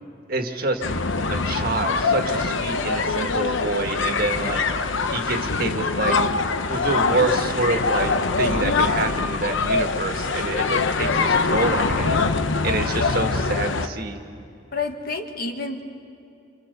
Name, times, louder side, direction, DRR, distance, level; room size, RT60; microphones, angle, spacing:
voice 1, 0.3-0.8 1.3-4.7 5.1-6.2 6.7-8.1 8.4-12.2 12.6-14.2, right 2 dB, 45° right, 5 dB, 1.8 m, -27 dB
sound 1, 0.8-13.9, left 4 dB, 70° left, 0.9 m, -23 dB
voice 2, 14.7-15.8, left 4 dB, 45° left, 4 dB, 1.8 m, -29 dB
27.5 x 27.0 x 6.9 m, 2.6 s
head